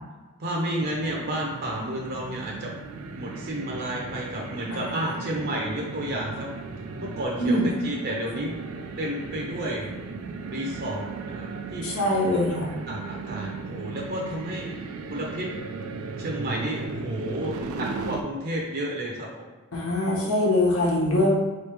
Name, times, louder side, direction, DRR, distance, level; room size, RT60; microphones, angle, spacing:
voice 1, 0.4-2.7 3.2-6.5 7.0-8.6 9.0-9.9 10.4-11.8 12.9-15.5 16.2-19.3, right 1 dB, 50° right, -2 dB, 0.6 m, -31 dB
sound 1, 0.8-18.2, right 4 dB, 85° right, 0.4 m, -36 dB
voice 2, 11.8-12.7 19.7-21.3, left 1 dB, 85° left, -3 dB, 1.2 m, -23 dB
3.9 x 3.2 x 3.4 m, 1.2 s
head